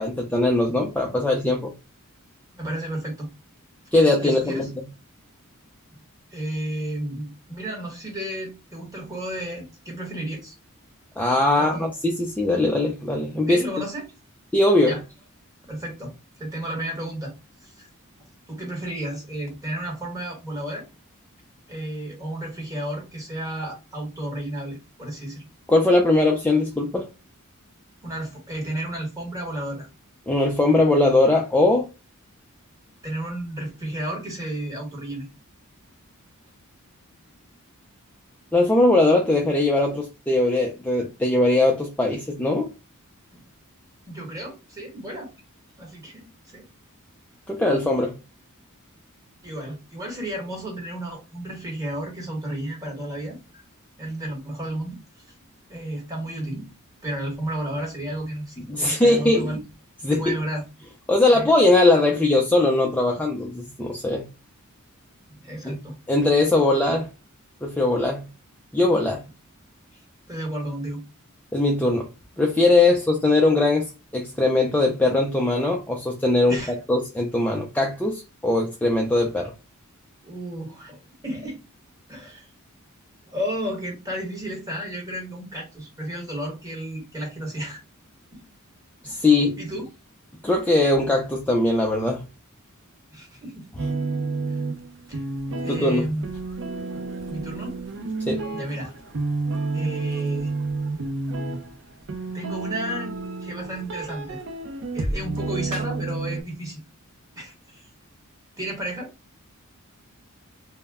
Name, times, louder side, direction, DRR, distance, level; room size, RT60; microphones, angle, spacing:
voice 1, 0.0-1.7 3.9-4.8 11.2-13.6 14.5-14.9 25.7-27.1 30.3-31.9 38.5-42.7 47.5-48.1 58.7-59.6 60.0-60.3 61.1-64.3 65.6-65.8 66.1-67.1 67.6-68.2 68.7-69.2 71.5-72.1 72.4-79.5 89.0-89.6 90.4-92.2 95.7-96.1 98.3-98.4, left 2 dB, 5° left, 0.3 m, -20 dB
voice 2, 2.5-3.3 3.9-4.7 5.9-6.0 6.3-10.5 11.5-11.9 13.5-14.1 14.8-15.0 15.7-16.1 16.4-17.3 17.6-17.9 18.5-20.8 21.7-25.5 28.0-29.9 33.0-35.3 43.3-43.4 44.1-45.3 45.8-46.7 49.4-53.6 54.0-55.0 55.7-56.7 57.0-59.6 60.1-60.6 61.3-61.5 65.3-66.0 69.9-71.0 76.5-76.8 80.2-81.6 82.1-82.5 83.3-87.8 88.3-88.5 89.0-89.2 89.6-89.9 93.1-93.7 94.5-94.6 95.1-95.2 95.6-96.3 96.9-97.0 97.3-97.8 98.5-98.9 99.7-100.5 102.3-104.4 104.9-106.8 107.3-107.9 108.6-109.1, right 1 dB, 15° right, 1.2 m, -32 dB
sound 1, 93.8-106.4, right 3 dB, 60° right, 0.5 m, -30 dB
2.1 x 2.1 x 3.4 m
head